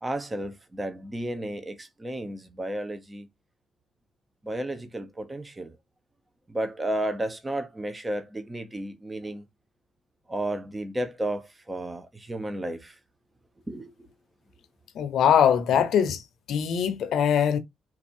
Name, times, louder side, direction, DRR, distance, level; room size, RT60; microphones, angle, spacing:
voice 1, 0.0-3.3 4.4-5.8 6.5-9.4 10.3-13.0 13.7-14.1, right 1 dB, 20° right, 1.0 m, -33 dB
voice 2, 14.9-16.2 16.5-17.6, left 8 dB, 75° left, 0.9 m, -22 dB
4.2 x 2.7 x 4.4 m
cardioid pair, 90°, 0 cm